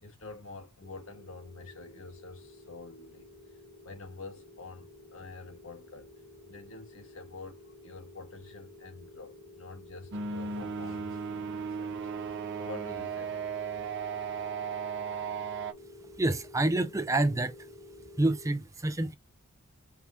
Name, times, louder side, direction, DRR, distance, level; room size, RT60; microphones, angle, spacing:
voice 1, 0.0-3.3 3.8-6.1 6.4-13.5, left 3 dB, 70° left, 1.4 m, -47 dB
sound 1, 0.8-18.5, left 2 dB, 40° left, 1.4 m, -52 dB
sound 2, 10.1-15.7, right 6 dB, 55° right, 0.6 m, -36 dB
voice 2, 16.2-17.6 18.2-19.1, right 2 dB, 15° right, 0.5 m, -27 dB
4.7 x 3.6 x 2.7 m
head